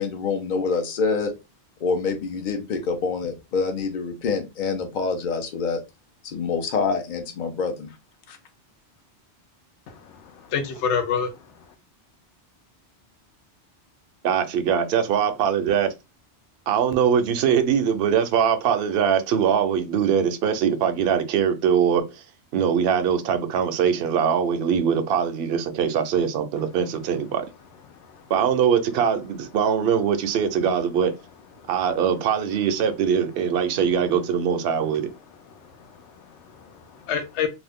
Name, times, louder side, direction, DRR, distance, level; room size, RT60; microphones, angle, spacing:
voice 1, 0.0-1.3 1.8-5.8 6.2-7.9 8.3-8.4, left 4 dB, 50° left, 0.8 m, -26 dB
voice 2, 9.9-11.3 28.0-28.2 31.6-31.7 35.5-37.5, left 7 dB, 80° left, 0.9 m, -29 dB
voice 3, 14.2-15.9 16.7-22.0 22.5-27.5 28.3-31.1 31.7-35.1, right 7 dB, 65° right, 0.7 m, -22 dB
2.6 x 2.4 x 3.5 m
omnidirectional pair, 1.2 m